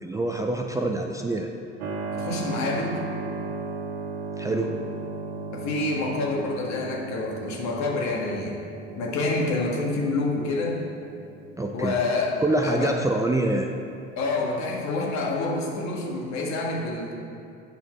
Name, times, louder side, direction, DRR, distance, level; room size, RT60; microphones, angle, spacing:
voice 1, 0.0-1.5 4.4-4.7 11.6-12.0 12.4-13.7, right 2 dB, 10° right, 2 dB, 0.5 m, -25 dB
Keyboard (musical), 1.8-14.2, right 3 dB, 80° right, 0.9 m, -37 dB
voice 2, 2.1-3.0 5.5-8.6 8.9-10.8 11.7-12.3 12.6-13.0 14.2-17.1, left 3 dB, 55° left, -1 dB, 1.8 m, -27 dB
8.7 x 5.6 x 4.5 m, 2.6 s
hypercardioid pair, 75°, 34 cm